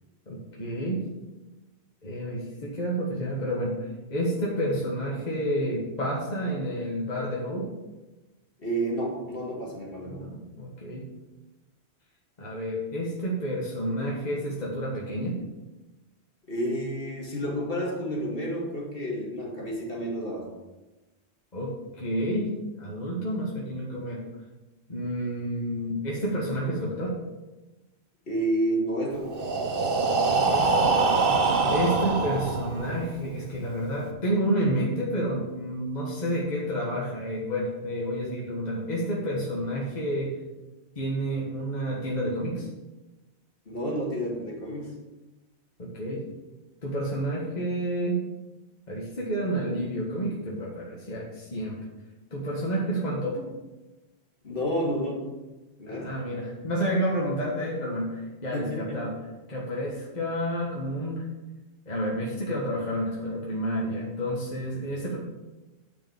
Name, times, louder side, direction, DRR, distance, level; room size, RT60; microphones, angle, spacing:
voice 1, 0.3-1.0 2.0-7.7 10.1-11.1 12.4-15.4 21.5-21.7 22.0-22.5 22.8-24.2 24.9-27.1 30.2-30.7 31.7-40.3 40.9-42.7 45.8-46.3 46.8-48.2 48.9-51.8 52.3-53.5 55.9-59.2 59.5-61.3 61.9-65.2, equal, 40° left, -4 dB, 1.6 m, -30 dB
voice 2, 8.6-10.2 16.5-20.5 28.3-29.4 43.7-44.9 54.4-55.3 55.8-56.1 58.5-59.0, right 1 dB, 55° left, -2 dB, 2.4 m, -30 dB
Breathing, 29.2-33.1, right 4 dB, 55° right, 1.2 m, -24 dB
9.3 x 5.2 x 7.0 m, 1.1 s
omnidirectional pair, 1.1 m